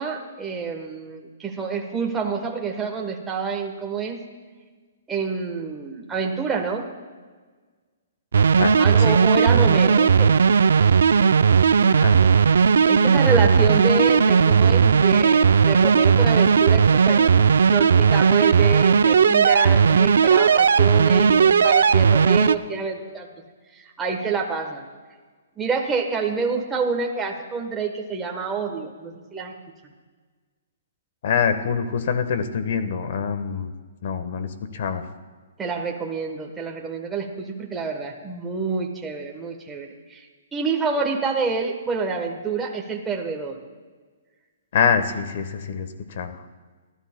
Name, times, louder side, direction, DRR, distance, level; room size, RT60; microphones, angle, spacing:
voice 1, 0.0-4.2 5.1-6.9 8.8-10.4 12.2-12.5 12.9-17.3 17.7-23.3 23.7-24.8 25.6-29.5 35.6-40.2 40.5-43.6, right 5 dB, 10° right, 0 dB, 1.1 m, -27 dB
sound 1, 8.3-22.6, right 6 dB, 80° right, 0.4 m, -16 dB
voice 2, 31.2-33.7 34.0-35.0 44.7-46.4, left 6 dB, 55° left, 9 dB, 1.2 m, -25 dB
28.0 x 13.0 x 2.2 m, 1.4 s
hypercardioid pair, 155°, 0 cm